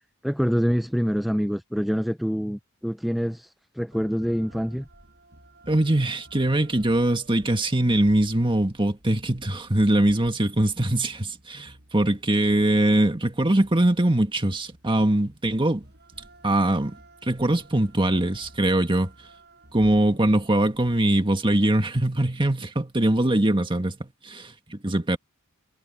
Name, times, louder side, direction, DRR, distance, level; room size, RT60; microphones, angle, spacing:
voice 1, 0.2-4.9, equal, ahead, 0.4 m, -26 dB
sound 1, 3.9-21.0, right 1 dB, 50° right, 7.0 m, -52 dB
voice 2, 5.7-15.9 16.4-19.1 19.7-25.2, right 1 dB, 25° right, 1.8 m, -22 dB
head